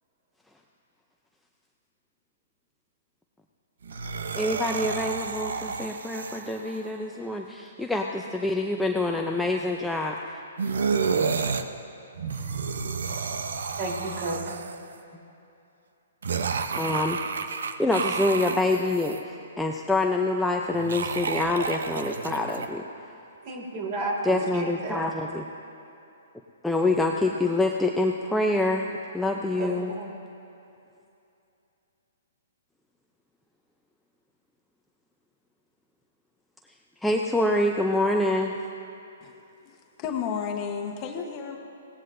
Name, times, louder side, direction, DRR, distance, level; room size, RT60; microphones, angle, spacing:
sound 1, 3.8-6.9 10.6-11.6 12.1-14.9 16.2-19.2 20.7-22.7, right 5 dB, 80° right, 0.8 m, -30 dB
voice 1, 4.3-10.2 16.7-17.2 17.8-22.8 24.2-25.5 26.6-29.9 37.0-38.5, left 2 dB, 5° left, 0 dB, 0.6 m, -26 dB
voice 2, 13.8-14.6 23.4-25.0 29.6-30.1, right 2 dB, 45° right, -2 dB, 3.8 m, -32 dB
voice 3, 39.2-41.6, left 7 dB, 30° left, 3 dB, 1.2 m, -33 dB
22.0 x 17.5 x 2.7 m, 2.7 s
hypercardioid pair, 145°, 0 cm